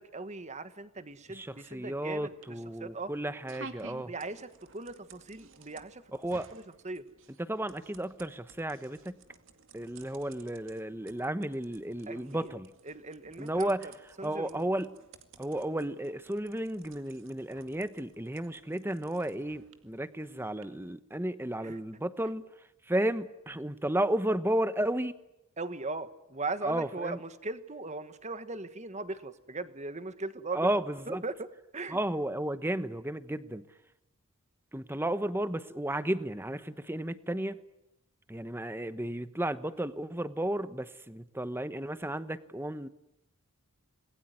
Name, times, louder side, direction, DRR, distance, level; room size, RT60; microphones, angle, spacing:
voice 1, 0.0-3.1 4.0-6.0 6.5-7.0 12.1-12.5 12.8-13.9 14.2-14.6 21.6-21.8 25.6-31.5 31.7-32.0, right 3 dB, 30° right, 11 dB, 1.5 m, -39 dB
sound 1, 1.1-20.6, right 4 dB, 60° right, 2.2 m, -55 dB
voice 2, 1.3-4.1 6.2-6.5 7.4-9.2 9.7-12.7 13.4-13.9 14.2-14.9 15.4-22.4 22.9-25.2 26.6-27.2 30.5-31.2 31.9-33.6 34.7-37.6 38.3-42.9, right 1 dB, 10° right, 13 dB, 1.0 m, -33 dB
28.0 x 21.0 x 9.6 m, 0.91 s
head